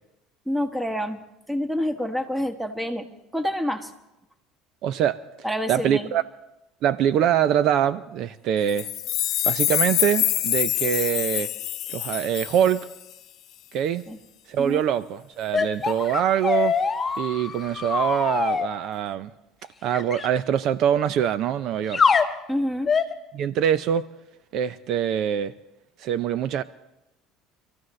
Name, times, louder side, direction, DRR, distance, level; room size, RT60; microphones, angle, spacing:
voice 1, 0.5-1.2 1.5-3.1 3.3-3.9 5.4-6.1 14.1-14.2 14.6-14.8 22.5-22.9, equal, 5° right, 6 dB, 1.6 m, -27 dB
voice 2, 4.8-5.2 5.7-6.2 6.8-8.9 9.4-11.5 11.9-12.9 13.7-14.0 14.5-16.8 17.2-19.3 19.8-22.0 23.3-24.0 24.5-25.5 26.0-26.6, right 9 dB, 60° right, 14 dB, 0.6 m, -24 dB
sound 1, 8.7-13.1, left 14 dB, 60° left, 0.9 m, -26 dB
sound 2, 15.5-18.7 19.9-20.3 21.9-22.3 22.9-23.1, left 5 dB, 25° left, 1.6 m, -23 dB
26.0 x 14.5 x 3.2 m, 0.93 s
supercardioid pair, 110°, 0 cm